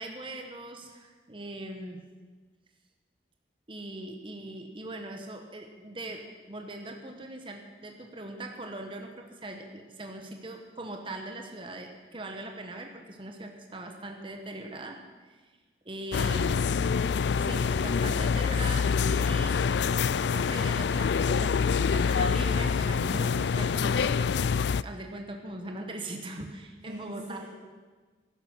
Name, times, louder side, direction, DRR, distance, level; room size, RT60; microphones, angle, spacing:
voice 1, 0.0-2.1 3.7-15.4 15.8-16.7 17.4-19.6 20.0-27.4, right 2 dB, 30° right, 3 dB, 1.2 m, -41 dB
sound 1, 16.1-24.8, left 6 dB, 80° left, 0.4 m, -26 dB
voice 2, 26.8-27.5, equal, 60° right, -4 dB, 2.5 m, -45 dB
15.0 x 12.0 x 6.2 m, 1.4 s
head